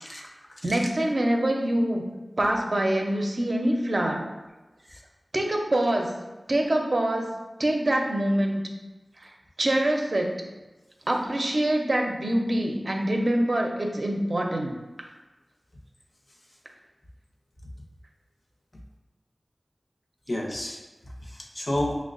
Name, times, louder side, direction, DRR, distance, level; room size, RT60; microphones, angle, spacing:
voice 1, 0.0-0.9 4.9-5.0 20.3-22.0, left 1 dB, 40° left, -1 dB, 0.7 m, -32 dB
voice 2, 0.6-2.1 2.4-4.3 5.3-6.2 6.5-7.3 7.6-8.7 9.2-9.3 9.6-10.4 11.1-14.7 15.0-15.1, right 1 dB, 55° right, 1 dB, 0.5 m, -25 dB
6.1 x 2.1 x 2.5 m, 1.1 s
wide cardioid pair, 50°, 0 cm